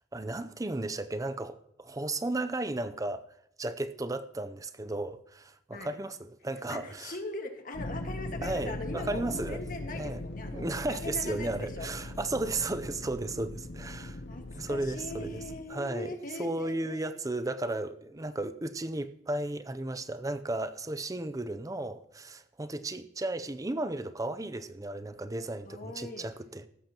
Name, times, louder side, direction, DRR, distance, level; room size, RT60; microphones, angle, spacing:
voice 1, 0.1-3.2 3.6-7.2 8.4-9.6 9.9-10.2 10.5-14.2 14.5-15.4 15.7-26.6, right 2 dB, 20° right, 0.5 m, -34 dB
voice 2, 6.7-11.9 14.2-17.1 25.6-26.3, left 2 dB, 50° left, 1.6 m, -41 dB
sound 1, 7.7-15.6, left 1 dB, 65° left, 0.9 m, -40 dB
15.5 x 13.5 x 2.9 m
head